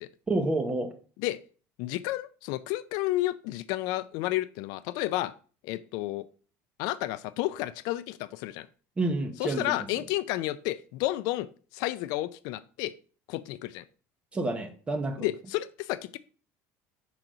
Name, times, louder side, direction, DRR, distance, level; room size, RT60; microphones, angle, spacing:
voice 1, 0.3-0.9 9.0-9.6 14.3-15.2, right 2 dB, 15° right, 0.9 m, -28 dB
voice 2, 1.8-5.3 5.6-6.3 6.8-8.7 9.4-11.5 11.7-12.9 13.3-13.8 15.2-16.2, left 16 dB, 70° left, 0.4 m, -31 dB
6.0 x 3.9 x 5.0 m
cardioid pair, 150°, 7 cm